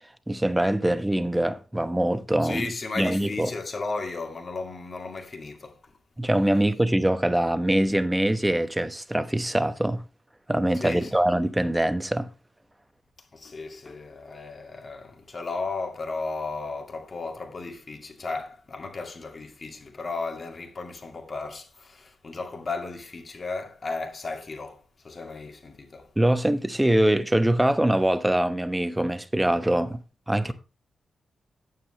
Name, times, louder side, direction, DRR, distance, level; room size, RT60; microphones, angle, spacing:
voice 1, 0.3-3.5 6.2-10.0 10.5-12.3 26.2-30.5, right 1 dB, 10° right, 1.0 m, -23 dB
voice 2, 2.4-5.8 10.7-11.1 13.3-24.8 25.0-26.1 30.4-30.5, left 3 dB, 45° left, 2.2 m, -35 dB
9.0 x 7.6 x 3.2 m
cardioid pair, 60°, 0 cm